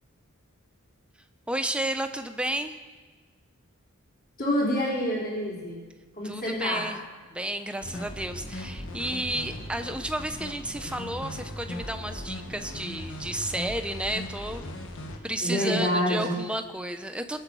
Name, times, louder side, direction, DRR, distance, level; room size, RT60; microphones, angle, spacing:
voice 1, 1.5-2.7 6.2-7.0 7.3-14.7 15.2-17.4, right 1 dB, 5° right, 7 dB, 0.8 m, -32 dB
voice 2, 4.4-5.8 6.1-6.9 15.4-16.4, equal, 45° left, -5 dB, 3.9 m, -27 dB
sound 1, 7.8-15.2, left 1 dB, 60° left, 1.7 m, -38 dB
21.5 x 7.8 x 6.3 m, 1.4 s
head